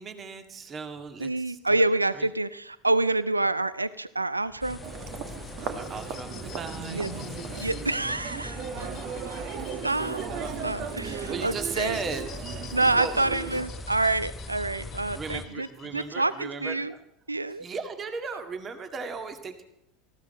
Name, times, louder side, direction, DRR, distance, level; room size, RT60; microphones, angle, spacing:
voice 1, 0.0-1.6 2.1-2.3 5.8-7.1 11.0-12.6 13.0-13.2 15.1-17.0 17.6-19.7, right 4 dB, 30° right, 7 dB, 1.9 m, -36 dB
voice 2, 1.2-4.8 6.9-7.1 7.6-9.6 9.8-10.2 10.6-12.0 12.7-15.7 15.9-16.9 17.3-17.7, right 2 dB, 90° right, 17 dB, 0.5 m, -27 dB
sound 1, 4.6-15.5, left 3 dB, 20° left, 0.8 m, -41 dB
Human voice, 4.8-13.6, right 7 dB, 50° right, 1.6 m, -37 dB
sound 2, 5.4-16.6, left 10 dB, 40° left, 1.1 m, -50 dB
19.0 x 15.0 x 4.2 m, 0.81 s
figure-of-eight pair, 75°, 0 cm